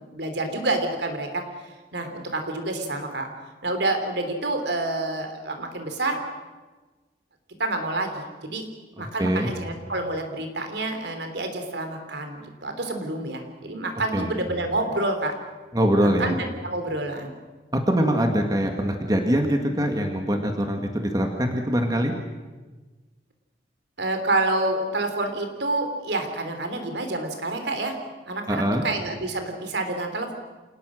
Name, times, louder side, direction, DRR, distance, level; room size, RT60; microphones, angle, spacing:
voice 1, 0.0-1.4 1.9-3.3 3.6-6.2 7.6-8.6 9.0-15.3 16.0-17.3 24.0-27.9 28.3-30.3, right 2 dB, 75° right, 6 dB, 3.4 m, -28 dB
voice 2, 9.0-9.5 14.1-14.3 15.7-16.4 17.9-22.1 28.5-28.8, equal, 20° right, 4 dB, 1.9 m, -23 dB
27.5 x 19.0 x 6.4 m, 1.3 s
head